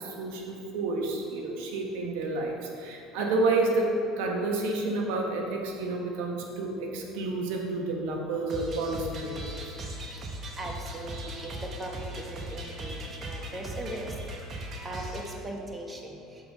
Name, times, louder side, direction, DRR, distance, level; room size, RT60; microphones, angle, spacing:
voice 1, 0.0-9.7, right 2 dB, 80° right, 1 dB, 0.9 m, -30 dB
sound 1, 8.5-15.3, right 1 dB, 45° right, 1.0 m, -38 dB
voice 2, 10.6-11.2 11.4-14.1 14.8-16.2, right 1 dB, 20° right, 1 dB, 1.0 m, -39 dB
6.7 x 3.9 x 4.9 m, 2.5 s
supercardioid pair, 90°, 0 cm